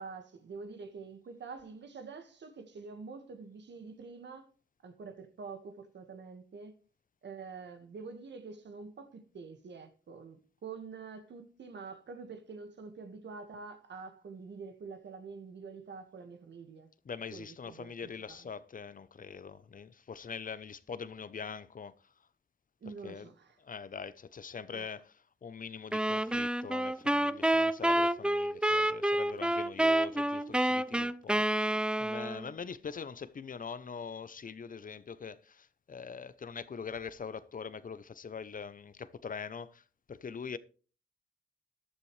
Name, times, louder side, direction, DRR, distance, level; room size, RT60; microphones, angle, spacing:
voice 1, 0.0-4.5 4.8-6.7 7.2-16.9 17.3-18.5 22.8-23.6 24.7-24.9, right 4 dB, 75° right, 1.6 m, -46 dB
voice 2, 17.0-21.9 22.8-23.3 23.6-25.1 25.4-39.8 40.1-40.6, left 6 dB, 50° left, 0.7 m, -43 dB
sound 1, 25.9-32.5, right 1 dB, 5° right, 0.5 m, -29 dB
14.0 x 11.5 x 3.2 m
cardioid pair, 80°, 18 cm